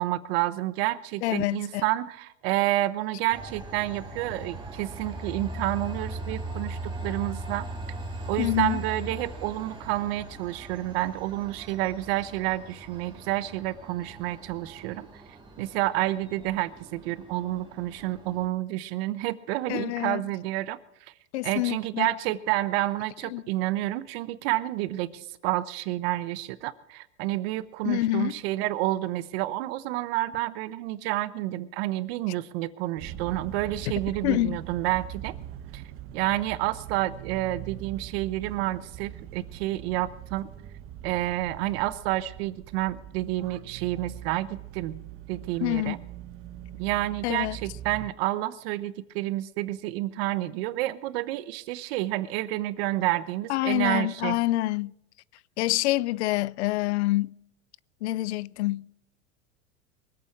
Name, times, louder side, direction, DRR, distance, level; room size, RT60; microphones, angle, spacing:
voice 1, 0.0-7.7 8.3-15.1 15.6-20.8 21.4-35.3 35.7-35.8 36.1-40.5 41.0-44.5 44.7-45.0 45.3-46.0 46.8-54.4, right 16 dB, 65° right, 1.0 m, -29 dB
voice 2, 1.2-1.8 8.4-8.8 19.7-20.2 21.3-22.1 23.3-23.4 27.8-28.4 34.2-34.6 45.6-45.9 47.2-47.6 53.5-54.9 55.6-57.3 58.0-58.9, left 17 dB, 80° left, 0.5 m, -26 dB
Train, 3.3-18.5, right 2 dB, 15° right, 3.0 m, -39 dB
sound 1, 33.0-48.1, right 11 dB, 40° right, 1.2 m, -42 dB
23.0 x 8.6 x 4.8 m
supercardioid pair, 120°, 33 cm